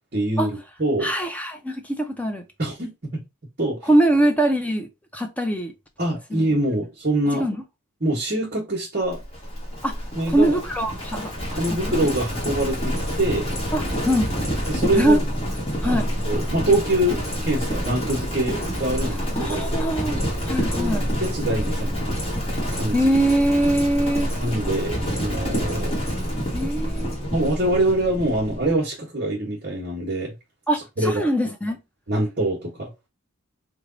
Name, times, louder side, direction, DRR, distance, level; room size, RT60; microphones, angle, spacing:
voice 1, 0.1-1.1 2.6-3.2 3.6-3.9 6.0-7.5 8.0-9.2 10.1-10.6 11.5-13.5 14.7-15.2 15.8-19.7 20.7-22.1 22.7-23.1 24.4-26.0 27.3-30.3 30.7-31.3 32.1-32.9, right 1 dB, 45° right, 1.1 m, -25 dB
voice 2, 1.0-2.4 3.9-5.7 6.3-6.5 7.4-7.6 9.8-9.9 10.3-11.9 13.7-14.3 15.0-15.2 15.8-16.1 19.4-21.0 22.9-24.3 26.5-27.2 30.7-31.8, right 1 dB, 5° left, 0.5 m, -22 dB
Livestock farm animals working animals, 9.1-28.8, equal, 25° left, 1.1 m, -27 dB
3.2 x 2.3 x 3.8 m
head